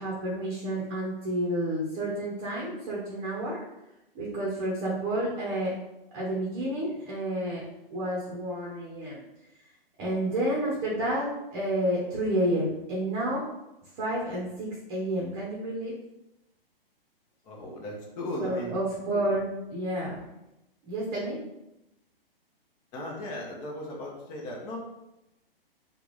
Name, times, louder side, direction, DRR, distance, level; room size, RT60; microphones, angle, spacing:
voice 1, 0.0-3.6 4.1-5.7 6.1-7.6 7.9-9.2 10.0-13.4 14.0-16.0 18.4-20.2 20.9-21.4, right 1 dB, 30° right, -4 dB, 0.9 m, -30 dB
voice 2, 17.4-18.7 22.9-24.8, equal, 25° left, -2 dB, 0.9 m, -36 dB
3.6 x 2.4 x 3.2 m, 0.91 s
figure-of-eight pair, 120°, 29 cm